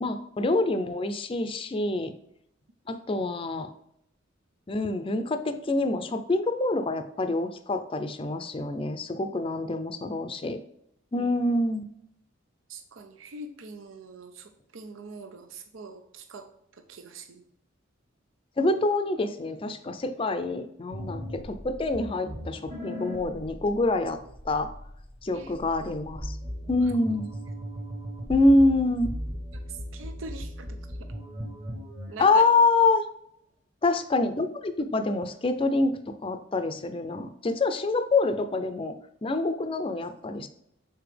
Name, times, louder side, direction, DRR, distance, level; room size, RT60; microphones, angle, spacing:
voice 1, 0.0-2.1 2.9-3.7 4.7-10.6 11.1-11.9 18.6-24.2 24.4-24.7 25.2-26.4 26.7-27.3 28.3-29.1 32.2-33.0 33.8-39.0 39.2-40.5, left 2 dB, 30° left, 9 dB, 0.4 m, -26 dB
voice 2, 12.7-16.5 16.9-17.4 25.3-25.5 27.1-27.2 29.5-31.0 32.1-32.4, right 3 dB, 90° right, 6 dB, 0.6 m, -43 dB
sound 1, 20.9-32.2, equal, 40° right, 1.4 m, -38 dB
6.9 x 4.2 x 3.3 m, 0.75 s
head